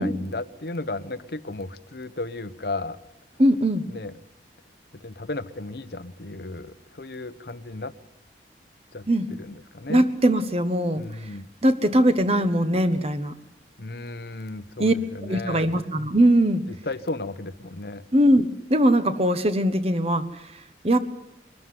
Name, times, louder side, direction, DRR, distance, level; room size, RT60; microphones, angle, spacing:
voice 1, 0.0-3.0 3.9-4.1 4.9-7.9 8.9-10.1 11.0-11.5 13.8-15.7 16.7-18.0, left 2 dB, 60° left, 13 dB, 1.0 m, -34 dB
voice 2, 3.4-3.9 9.1-9.3 9.9-11.0 11.6-13.3 14.8-14.9 15.3-16.6 18.1-20.3 20.8-21.0, right 1 dB, 35° right, 10 dB, 1.3 m, -20 dB
23.0 x 13.0 x 9.6 m, 0.89 s
head